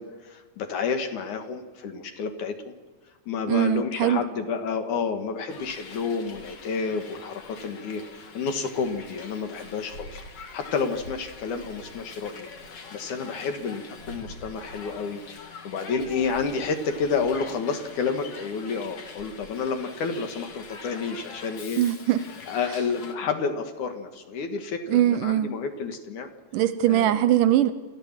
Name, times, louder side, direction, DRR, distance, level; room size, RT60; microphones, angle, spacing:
voice 1, 0.0-2.7 3.3-21.8 22.5-26.3 26.9-27.1, left 5 dB, 65° left, 6 dB, 2.9 m, -30 dB
voice 2, 3.5-4.2 21.8-22.2 24.9-25.5 26.5-27.7, right 12 dB, 75° right, 12 dB, 2.2 m, -21 dB
Hiss, 5.5-23.1, left 4 dB, 50° left, 2.8 m, -44 dB
28.0 x 14.5 x 7.4 m, 1.3 s
omnidirectional pair, 4.1 m